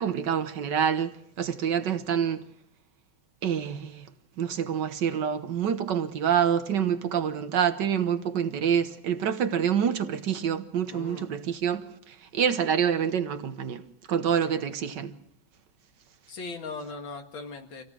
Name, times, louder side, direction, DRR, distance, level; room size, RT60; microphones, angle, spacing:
voice 1, 0.0-2.4 3.4-4.0 4.4-13.8 14.1-15.1, right 8 dB, 65° right, 1.7 m, -27 dB
voice 2, 10.9-11.3 16.3-17.8, left 3 dB, 90° left, 2.9 m, -39 dB
26.0 x 17.0 x 6.3 m
omnidirectional pair, 2.1 m